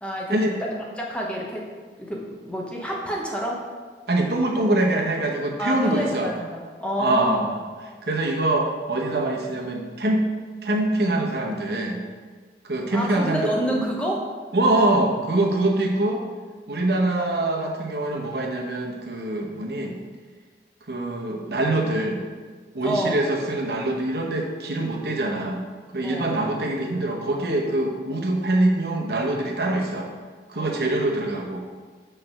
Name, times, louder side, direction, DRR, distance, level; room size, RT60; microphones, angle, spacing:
voice 1, 0.0-0.7 1.0-1.6 2.0-3.6 5.6-7.5 12.9-14.2 22.8-23.3 26.0-26.4 30.5-30.9, equal, 5° left, -2 dB, 0.7 m, -28 dB
voice 2, 4.1-6.3 7.0-7.6 8.0-10.3 10.6-12.0 12.6-13.9 14.5-16.2 16.7-19.9 20.9-22.2 22.7-25.7 25.9-30.1 30.5-31.6, right 1 dB, 65° right, 0 dB, 0.9 m, -24 dB
6.5 x 3.3 x 5.9 m, 1.5 s
head